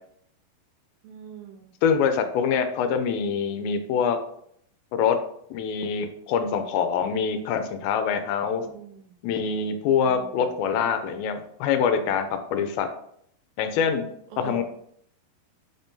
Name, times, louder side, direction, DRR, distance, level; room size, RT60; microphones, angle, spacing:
voice 1, 1.0-1.7 8.6-9.1 10.0-10.5 14.3-14.6, right 8 dB, 85° right, 1 dB, 2.6 m, -42 dB
voice 2, 1.8-4.2 4.9-5.2 5.5-8.7 9.2-12.9 13.6-14.1 14.4-14.6, left 6 dB, 85° left, 8 dB, 2.4 m, -25 dB
5.7 x 3.5 x 2.6 m, 0.68 s
omnidirectional pair, 4.2 m